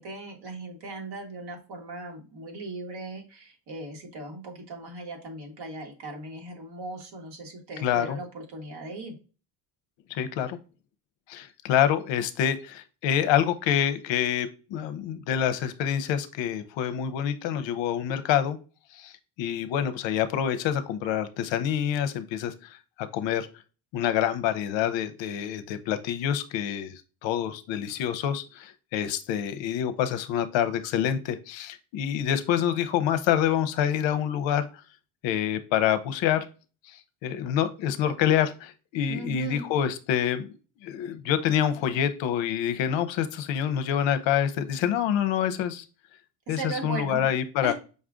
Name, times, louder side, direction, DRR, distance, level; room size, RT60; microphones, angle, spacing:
voice 1, 0.0-9.2 39.1-39.6 46.5-47.3 47.6-47.7, right 2 dB, 55° right, 1 dB, 1.7 m, -38 dB
voice 2, 7.8-8.2 10.1-10.6 11.3-18.6 18.9-19.1 19.4-23.5 23.9-26.9 27.2-34.7 35.2-36.5 36.9-40.5 40.8-45.8 46.5-47.7, left 9 dB, 65° left, 11 dB, 0.7 m, -27 dB
5.3 x 2.4 x 3.6 m, 0.34 s
cardioid pair, 140°, 48 cm